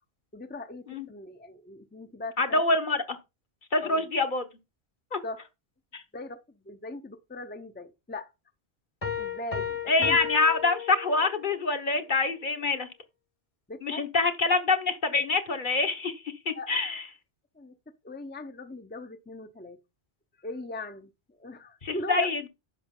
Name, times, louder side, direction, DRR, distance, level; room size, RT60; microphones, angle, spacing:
voice 1, 0.3-2.6 3.8-4.0 5.2-5.4 6.1-8.3 9.2-10.2 13.7-14.0 16.5-16.7 17.6-17.8 18.0-19.8 20.4-21.1 21.4-22.3, left 2 dB, 10° left, 0.6 m, -39 dB
voice 2, 2.4-3.2 3.7-4.4 5.1-5.2 5.9-6.0 9.9-12.9 13.8-17.0 21.8-22.5, left 3 dB, 55° left, 1.3 m, -26 dB
sound 1, 9.0-11.5, left 7 dB, 35° left, 1.2 m, -34 dB
10.0 x 6.2 x 3.7 m
omnidirectional pair, 1.0 m